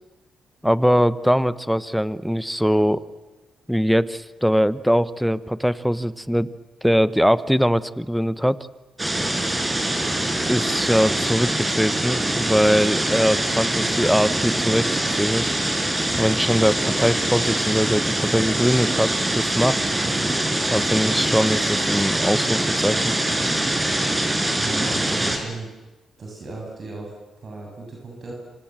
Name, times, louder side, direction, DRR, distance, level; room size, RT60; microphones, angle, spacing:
voice 1, 0.6-3.0 3.7-6.5 6.8-8.6 10.5-15.5 16.2-19.8 20.7-23.1, equal, ahead, 15 dB, 1.0 m, -21 dB
sound 1, 9.0-25.4, right 1 dB, 15° right, 5.7 m, -23 dB
voice 2, 24.6-25.7 26.2-28.3, right 3 dB, 50° right, -1 dB, 7.3 m, -36 dB
27.0 x 26.0 x 7.6 m, 1.1 s
cardioid pair, 80°, 0 cm